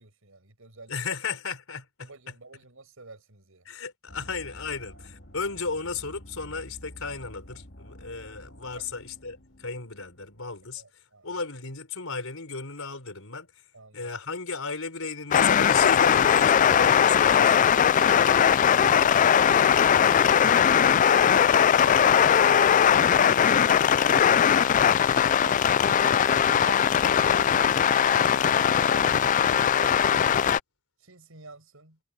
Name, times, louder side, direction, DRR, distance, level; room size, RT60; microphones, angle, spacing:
voice 1, 0.0-1.0 2.0-3.7 4.1-4.3 8.7-8.9 10.8-11.4 13.7-14.1 24.6-25.6 25.9-27.5 28.3-30.5 31.0-32.0, right 3 dB, 70° right, 6.2 m, -48 dB
voice 2, 0.9-2.1 3.6-10.8 11.2-13.5 13.9-17.6, left 4 dB, 75° left, 4.7 m, -34 dB
sound 1, 4.1-10.8, equal, 55° left, 2.3 m, -49 dB
sound 2, 15.3-30.6, left 8 dB, 35° left, 0.3 m, -20 dB
head